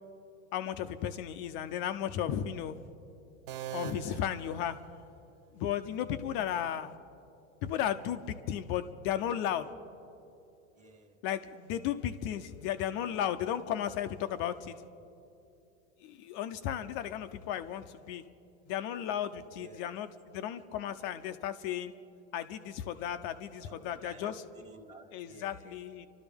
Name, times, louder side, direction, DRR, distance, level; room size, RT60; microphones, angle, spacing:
voice 1, 0.5-2.8 3.7-4.8 5.5-6.9 7.6-9.7 11.2-14.8 16.0-18.2 18.7-21.9 22.3-24.4 25.1-26.1, left 10 dB, 30° left, 10 dB, 0.4 m, -34 dB
sound 1, 3.5-5.4, right 11 dB, 45° right, 0.5 m, -43 dB
voice 2, 10.7-11.1 15.1-15.2 19.5-20.0 22.9-23.1 23.6-25.8, right 2 dB, 20° right, 4 dB, 1.5 m, -53 dB
28.5 x 12.5 x 3.5 m, 2.7 s
supercardioid pair, 140°, 39 cm